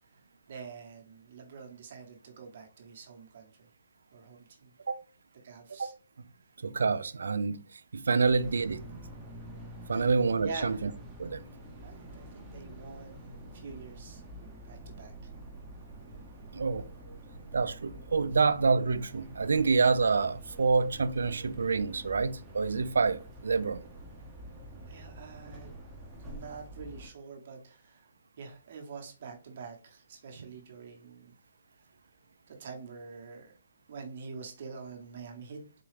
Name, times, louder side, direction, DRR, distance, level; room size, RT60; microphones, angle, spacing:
voice 1, 0.5-3.5 4.1-4.7 5.4-5.9 8.1-8.2 9.9-10.1 10.4-10.8 11.8-14.2 14.6-15.1 24.8-25.7 26.2-28.0 28.4-31.3 32.5-33.5 33.9-35.6, right 5 dB, 55° right, 0.9 m, -45 dB
voice 2, 6.6-7.6 7.9-8.8 9.9-10.9 11.2-11.4 16.5-16.8 17.5-23.8, right 4 dB, 80° right, 0.3 m, -27 dB
sound 1, 8.2-27.1, right 1 dB, 15° right, 0.7 m, -47 dB
4.0 x 2.3 x 3.2 m
hypercardioid pair, 150°, 0 cm